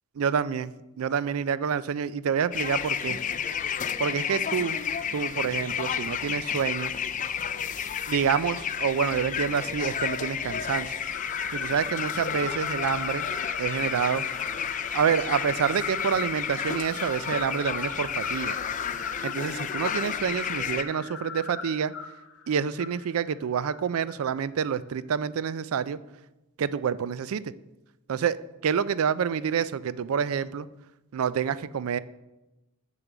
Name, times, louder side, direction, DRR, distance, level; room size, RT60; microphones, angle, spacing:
voice 1, 0.2-0.7 1.0-3.2 4.0-4.8 5.1-6.9 8.1-10.9 11.5-13.3 13.6-14.3 14.9-18.6 19.2-21.9 22.5-26.0 26.6-27.4 28.1-28.4 28.6-30.7 31.1-32.0, right 7 dB, 75° right, 17 dB, 0.4 m, -27 dB
sound 1, 2.5-20.8, left 8 dB, 35° left, 0.4 m, -31 dB
sound 2, 11.0-24.4, left 5 dB, 65° left, 1.0 m, -38 dB
6.9 x 6.8 x 6.0 m, 1.0 s
head